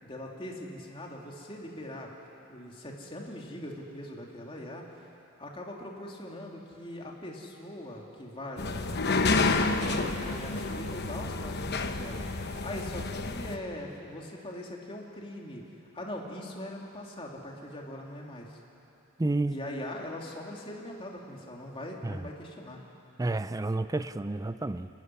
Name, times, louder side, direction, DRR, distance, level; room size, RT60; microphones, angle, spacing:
voice 1, 0.0-2.1 2.5-5.1 5.4-15.7 15.9-18.6 19.5-22.8, left 1 dB, 25° left, -1 dB, 2.6 m, -41 dB
sound 1, 8.6-13.6, left 3 dB, 50° left, 1.0 m, -29 dB
voice 2, 19.2-19.6 22.0-22.2 23.2-24.9, right 2 dB, 15° right, 13 dB, 0.4 m, -30 dB
29.0 x 12.5 x 9.7 m, 2.9 s
head